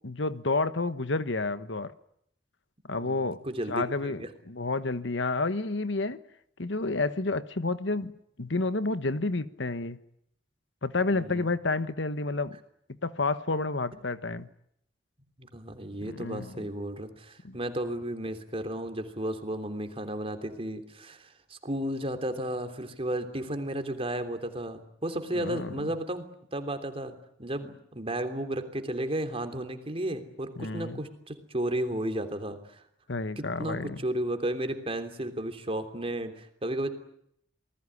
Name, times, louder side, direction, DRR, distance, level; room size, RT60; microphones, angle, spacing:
voice 1, 0.0-1.9 2.9-3.4 3.7-4.2 4.5-6.2 6.6-10.0 10.8-12.6 13.0-14.5 16.0-16.6 17.4-17.6 25.3-25.9 30.6-31.0 33.1-34.0, left 3 dB, 70° left, 1.2 m, -30 dB
voice 2, 3.0-4.3 11.1-11.5 15.4-26.2 26.5-32.8 33.4-36.9, right 1 dB, 30° right, 3.3 m, -33 dB
28.0 x 20.0 x 9.9 m
head